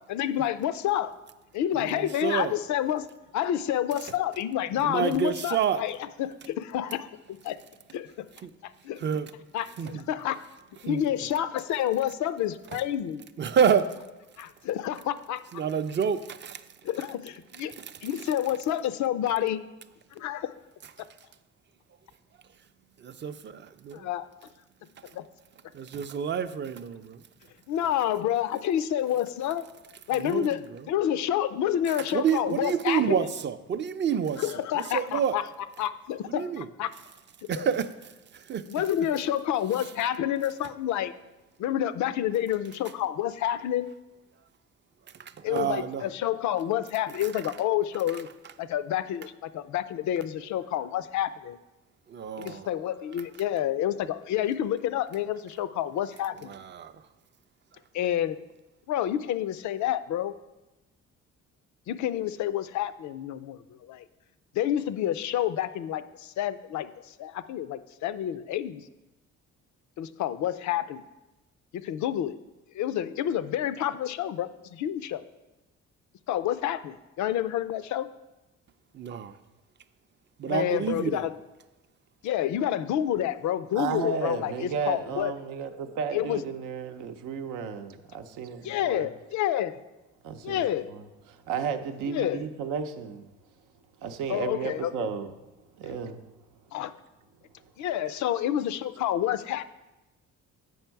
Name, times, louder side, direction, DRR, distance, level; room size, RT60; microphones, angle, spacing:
voice 1, 0.1-1.1 1.5-3.1 3.3-7.6 7.9-8.3 8.6-9.0 9.5-10.4 10.8-13.2 14.4-15.4 16.8-17.7 18.0-19.6 20.1-20.5 21.0-21.1 23.9-24.3 25.1-25.2 27.7-29.7 30.1-33.3 34.4-35.5 35.8-36.9 37.6-37.7 38.7-41.1 41.6-43.9 45.4-48.3 48.6-51.6 52.4-56.5 57.9-58.4 58.9-60.3 61.9-64.0 64.5-68.9 70.0-71.0 71.7-72.4 72.7-75.2 76.3-78.1 80.4-81.4 82.2-85.3 86.1-86.4 88.6-89.8 90.4-90.9 92.1-92.4 94.3-95.1 96.7-96.9 97.8-99.6, left 11 dB, 70° left, 0.5 m, -29 dB
voice 2, 1.9-2.5 4.8-5.8 8.4-8.5 9.0-9.3 9.8-10.0 10.8-11.0 13.4-13.9 15.5-16.6 23.0-24.1 25.7-27.2 30.2-30.6 32.1-34.5 34.9-35.4 36.4-36.7 37.5-37.9 38.3-38.6 45.2-46.0 52.1-52.7 56.5-56.9 78.9-79.4 80.4-81.3, right 7 dB, 40° right, 0.4 m, -28 dB
voice 3, 83.8-89.1 90.2-93.3 94.0-95.3 95.6-96.6 97.6-97.7 98.1-98.2, right 6 dB, 90° right, 0.6 m, -34 dB
7.9 x 5.3 x 4.5 m
cardioid pair, 90°, 30 cm